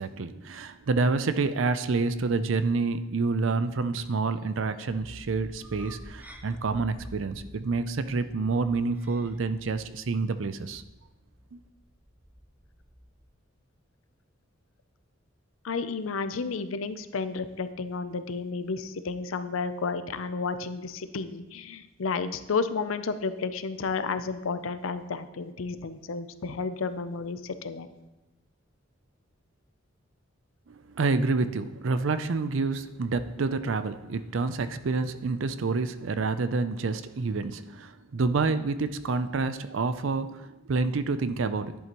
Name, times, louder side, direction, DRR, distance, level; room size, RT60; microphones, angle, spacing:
voice 1, 0.0-10.8 11.5-11.6 30.7-41.8, right 3 dB, 70° right, 12 dB, 0.5 m, -28 dB
sound 1, 4.9-13.3, equal, 10° right, 0.6 m, -49 dB
voice 2, 15.6-27.9, left 4 dB, 90° left, 11 dB, 0.6 m, -32 dB
11.0 x 8.5 x 3.0 m, 1.0 s
head